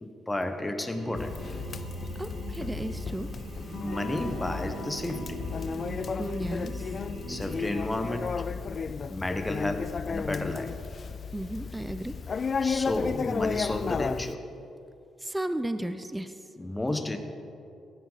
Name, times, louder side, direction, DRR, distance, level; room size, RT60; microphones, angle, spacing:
voice 1, 0.0-1.4 3.8-5.4 7.3-8.4 9.1-10.7 12.6-14.4 16.6-17.2, left 1 dB, 15° left, 7 dB, 1.2 m, -32 dB
sound 1, 0.9-7.8, right 2 dB, 65° right, 2.7 m, -41 dB
Conversation, 1.1-14.3, left 5 dB, 45° left, 0.4 m, -34 dB
voice 2, 2.2-3.3 6.2-6.9 11.3-12.1 15.2-16.4, right 1 dB, 10° right, 10 dB, 0.6 m, -34 dB
Electric guitar / Strum, 3.7-9.1, equal, 70° left, 2.2 m, -45 dB
16.5 x 11.5 x 4.1 m, 2.7 s
cardioid pair, 90°, 0 cm